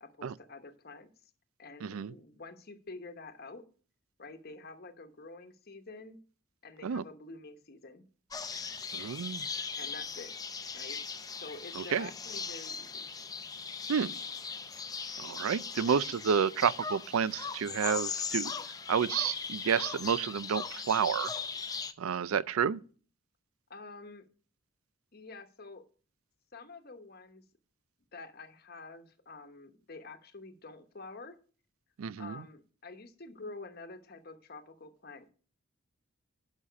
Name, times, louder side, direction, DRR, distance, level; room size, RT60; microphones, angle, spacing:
voice 1, 0.0-1.3 1.6-3.7 4.2-6.2 6.6-8.0 9.8-10.3 10.7-11.0 11.4-13.1 23.7-24.3 25.1-25.8 26.5-27.4 28.1-31.4 32.2-35.3, left 3 dB, 45° left, 1.0 m, -48 dB
voice 2, 1.8-2.1 6.8-7.0 8.9-9.4 11.8-12.1 13.9-14.1 15.2-18.5 18.9-21.3 22.0-22.8 32.0-32.4, right 7 dB, 80° right, 0.4 m, -30 dB
sound 1, 8.3-21.9, left 5 dB, 15° left, 0.5 m, -39 dB
11.5 x 5.6 x 5.1 m
head